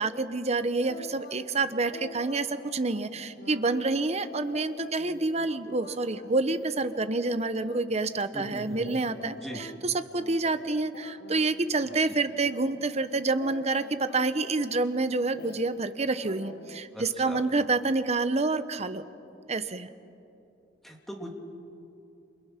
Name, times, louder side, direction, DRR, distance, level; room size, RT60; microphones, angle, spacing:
voice 1, 0.0-19.0 19.5-19.9, right 3 dB, 40° right, 11 dB, 1.0 m, -28 dB
sound 1, 0.8-1.5 1.8-9.8 10.2-11.5 11.7-12.2 12.5-15.9 16.2-16.8 17.2-17.4, left 2 dB, 65° left, 1.4 m, -46 dB
voice 2, 8.3-8.8 9.2-9.6 12.1-12.2 16.9-17.4 20.8-21.3, equal, ahead, 0 dB, 2.8 m, -40 dB
30.0 x 28.0 x 5.9 m, 2.7 s
head